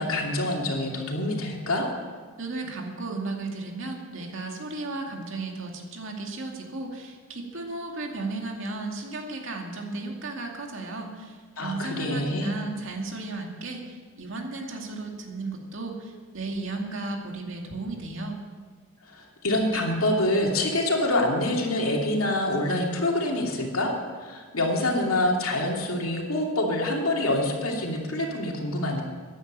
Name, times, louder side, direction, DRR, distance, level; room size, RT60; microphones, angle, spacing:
voice 1, 0.0-1.9 11.6-12.5 19.1-23.9 24.2-29.0, left 1 dB, 85° left, 0 dB, 2.7 m, -26 dB
voice 2, 2.4-18.4, right 2 dB, 65° right, 2 dB, 2.3 m, -34 dB
14.5 x 10.5 x 7.4 m, 1.5 s
head